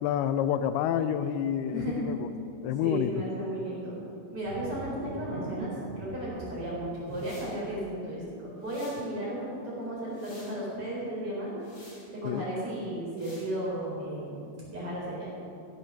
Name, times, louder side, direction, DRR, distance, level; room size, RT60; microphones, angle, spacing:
voice 1, 0.0-2.3 2.6-3.1 12.3-12.4, left 9 dB, 85° left, 12 dB, 2.5 m, -28 dB
voice 2, 1.7-2.1 2.8-4.0 4.3-8.2 8.6-11.5 12.1-15.3, right 1 dB, 35° right, -6 dB, 5.0 m, -34 dB
sound 1, 4.4-8.0 8.5-8.7, left 1 dB, 45° left, 1.2 m, -48 dB
sound 2, 4.5-8.2, right 5 dB, 85° right, 2.5 m, -44 dB
sound 3, 7.1-7.6 8.6-9.1 9.8-10.6 11.6-12.1 13.2-13.5, left 1 dB, 30° left, 3.8 m, -52 dB
15.5 x 9.1 x 6.5 m, 2.6 s
omnidirectional pair, 4.5 m